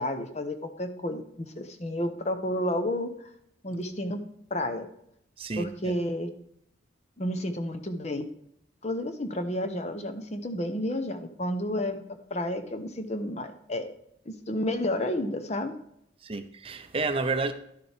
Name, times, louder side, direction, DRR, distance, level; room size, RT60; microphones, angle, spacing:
voice 1, 0.0-3.1 3.6-4.2 4.5-4.9 5.6-6.3 7.2-8.3 8.8-12.0 12.3-13.9 14.3-15.8, left 1 dB, 35° left, 0.8 m, -31 dB
voice 2, 5.4-5.9 16.2-17.5, right 3 dB, 30° right, 0.6 m, -30 dB
11.0 x 6.7 x 3.4 m
head